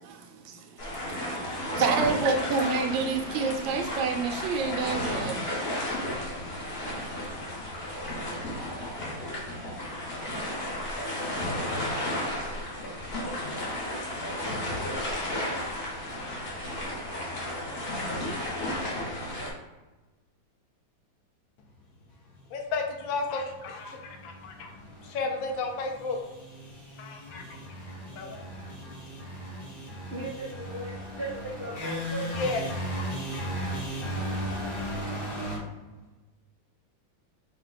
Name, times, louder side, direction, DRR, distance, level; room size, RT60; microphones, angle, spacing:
voice 1, 0.1-5.4 6.8-7.1, right 4 dB, 80° right, 4 dB, 1.3 m, -29 dB
sound 1, 0.8-19.5, left 1 dB, 45° left, 0.9 m, -33 dB
voice 2, 1.7-2.1 2.4-2.5 30.1-32.3, right 2 dB, 50° right, -6 dB, 0.7 m, -37 dB
voice 3, 22.5-26.2 27.0-29.9 31.8-31.9 32.3-34.2 34.7-34.9 35.2-35.4, left 3 dB, 80° left, 3 dB, 1.4 m, -35 dB
sound 2, 23.2-35.6, equal, 20° left, 0.8 m, -37 dB
4.6 x 2.3 x 3.9 m, 1.1 s
omnidirectional pair, 2.1 m